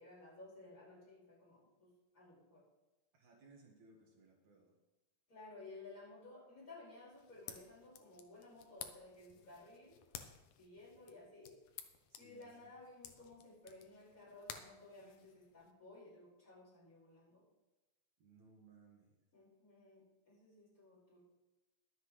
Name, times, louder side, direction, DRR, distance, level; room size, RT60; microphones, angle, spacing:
voice 1, 0.0-1.9 2.1-2.6 5.3-10.0 10.6-11.5 12.2-17.4 19.3-21.2, left 2 dB, 25° left, -7 dB, 5.7 m, -56 dB
voice 2, 3.1-4.8 12.1-12.8 18.2-19.2, right 3 dB, 65° right, -1 dB, 3.0 m, -64 dB
sound 1, 7.1-15.7, left 9 dB, 75° left, 2.3 m, -55 dB
22.5 x 8.0 x 3.3 m, 1.1 s
omnidirectional pair, 3.6 m